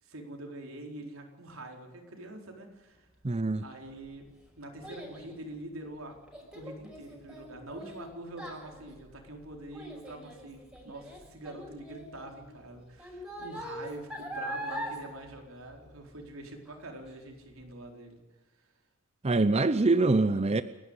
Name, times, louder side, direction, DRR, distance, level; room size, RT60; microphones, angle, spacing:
voice 1, 0.0-3.1 3.6-4.3 4.6-6.1 6.5-18.2, right 1 dB, 80° right, 4.3 m, -45 dB
voice 2, 3.2-3.6 19.2-20.6, right 3 dB, 30° right, 0.6 m, -24 dB
Child speech kid speaking, 3.7-16.3 16.7-17.1 17.6-17.7, equal, 5° right, 5.4 m, -43 dB
29.5 x 11.5 x 8.2 m
head